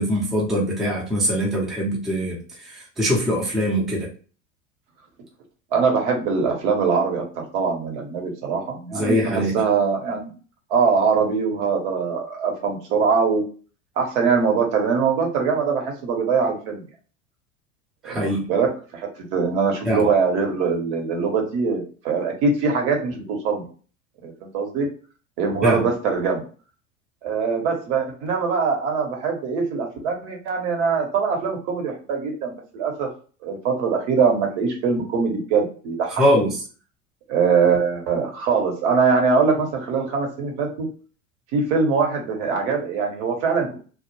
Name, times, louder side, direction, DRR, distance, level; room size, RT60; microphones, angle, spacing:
voice 1, 0.0-4.1 8.9-9.6 18.0-18.5 19.9-20.1 25.6-25.8 36.2-36.5, equal, ahead, -4 dB, 0.4 m, -22 dB
voice 2, 5.7-9.2 9.5-10.3 10.7-13.4 14.0-16.8 18.0-23.6 24.2-24.9 25.4-26.4 27.2-33.1 33.4-36.2 37.3-40.9 41.5-43.8, right 5 dB, 55° right, 2 dB, 0.9 m, -22 dB
2.1 x 2.0 x 3.0 m, 0.39 s
hypercardioid pair, 90°, 41 cm